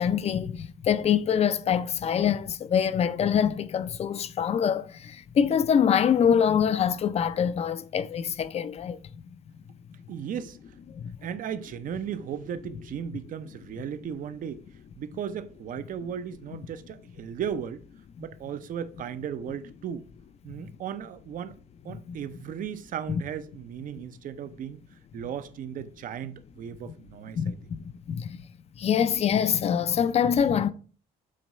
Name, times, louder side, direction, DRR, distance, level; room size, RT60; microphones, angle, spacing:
voice 1, 0.0-9.2 10.9-11.2 21.9-22.2 23.1-23.2 27.4-28.5 28.8-30.7, left 8 dB, 40° left, 0.5 m, -25 dB
voice 2, 10.1-10.6 11.2-14.6 15.0-17.9 18.2-20.1 20.4-21.6 21.8-24.8 25.1-27.6, right 8 dB, 55° right, 0.7 m, -36 dB
7.6 x 3.0 x 5.4 m
cardioid pair, 110°, 17 cm